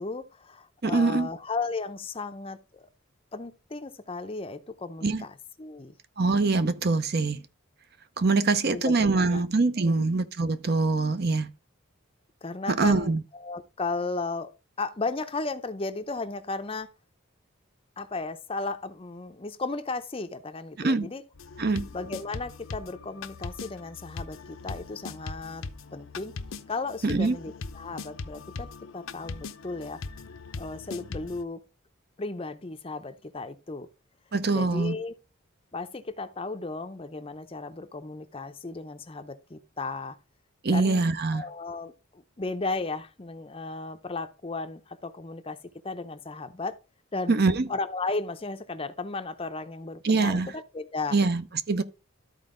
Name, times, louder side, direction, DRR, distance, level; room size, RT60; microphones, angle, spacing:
voice 1, 0.0-2.9 3.3-5.9 8.7-9.4 9.8-10.1 12.4-14.5 14.8-16.9 18.0-21.2 21.9-25.6 25.9-26.3 26.7-30.0 30.5-31.6 32.2-33.9 34.5-35.1 35.7-40.2 40.7-41.0 41.3-45.6 45.8-46.8 47.1-47.4 47.7-51.2, left 3 dB, 25° left, 0.6 m, -35 dB
voice 2, 0.8-1.3 5.0-5.2 6.2-7.4 8.2-11.5 12.7-13.2 20.8-21.1 21.6-21.8 27.0-27.4 34.3-35.0 40.6-41.4 47.3-47.7 50.0-50.5 51.1-51.8, right 3 dB, 50° right, 0.6 m, -24 dB
sound 1, 21.3-31.4, left 4 dB, 70° left, 0.7 m, -40 dB
12.5 x 4.4 x 3.7 m
head